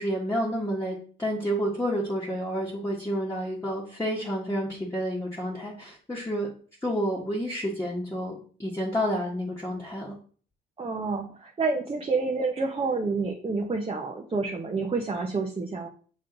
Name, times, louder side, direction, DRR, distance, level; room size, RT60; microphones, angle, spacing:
voice 1, 0.0-6.5 6.8-8.3 8.6-10.1, equal, 15° left, -4 dB, 1.4 m, -29 dB
voice 2, 10.8-15.9, right 4 dB, 30° right, 1 dB, 0.9 m, -28 dB
6.3 x 3.8 x 3.9 m, 0.43 s
cardioid pair, 90°, 20 cm